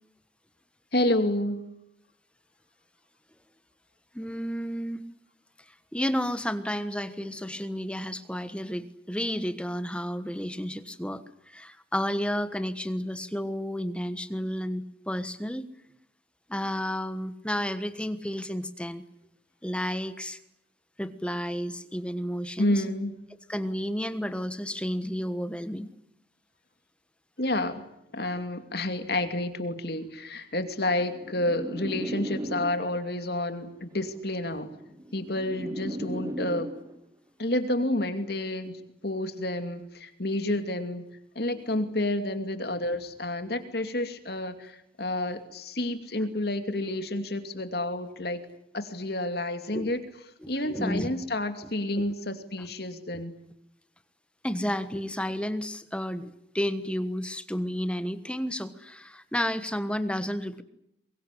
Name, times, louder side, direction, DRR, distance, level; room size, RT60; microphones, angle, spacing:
voice 1, 0.9-1.6 22.6-23.2 27.4-27.8 28.1-34.7 35.1-36.7 37.4-41.0 41.3-48.4 48.7-50.0 50.5-53.3, left 1 dB, 55° left, 8 dB, 2.6 m, -29 dB
voice 2, 4.1-5.0 5.9-15.6 16.5-19.0 19.6-20.4 21.0-22.8 23.5-25.9 49.7-49.9 50.4-51.1 52.0-52.1 54.4-60.6, equal, 5° left, 11 dB, 1.2 m, -31 dB
sound 1, 30.8-33.1 34.2-37.1, right 1 dB, 20° right, 1.1 m, -37 dB
23.5 x 22.5 x 9.9 m, 0.78 s
head